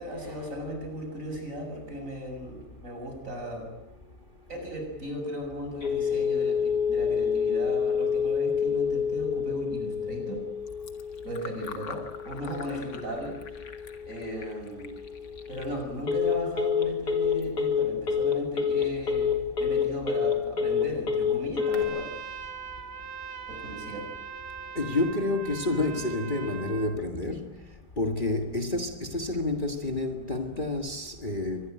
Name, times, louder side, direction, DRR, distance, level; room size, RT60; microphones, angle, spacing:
voice 1, 0.0-3.7 4.5-10.4 11.2-13.4 14.1-15.0 15.5-22.1 23.5-24.1, equal, 50° right, 7.6 m, -36 dB
Telephone, 5.8-21.8, left 6 dB, 65° left, 4.2 m, -28 dB
Fill (with liquid), 10.6-16.8, left 6 dB, 85° left, 2.5 m, -47 dB
Trumpet, 21.6-27.0, right 6 dB, 70° right, 2.0 m, -41 dB
voice 2, 24.8-27.5 28.0-31.7, left 2 dB, 30° left, 1.8 m, -29 dB
25.0 x 20.5 x 9.1 m
omnidirectional pair, 1.8 m